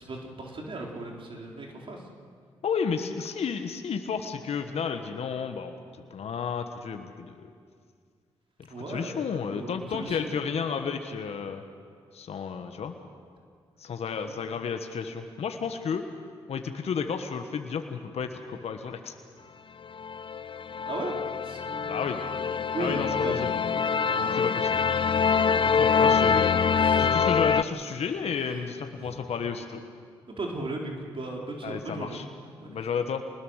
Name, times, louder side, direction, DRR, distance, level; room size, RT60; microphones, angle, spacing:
voice 1, 0.0-2.0 8.7-9.2 9.5-10.3 14.2-14.3 20.9-21.2 21.4-22.0 22.7-23.5 23.8-24.5 25.2-25.7 26.8-27.2 29.0-29.2 30.3-32.2 32.6-32.8, right 2 dB, 50° right, 0 dB, 4.1 m, -37 dB
voice 2, 2.6-7.5 8.7-11.6 12.1-12.9 13.8-16.0 16.5-19.2 21.9-22.2 22.8-23.6 24.3-24.8 25.7-26.5 27.0-29.8 31.6-32.2 32.7-33.2, left 6 dB, 65° left, 6 dB, 1.4 m, -32 dB
sound 1, 20.0-27.6, left 6 dB, 50° left, 0.7 m, -25 dB
25.5 x 20.0 x 6.5 m, 2.1 s
supercardioid pair, 50°, 11 cm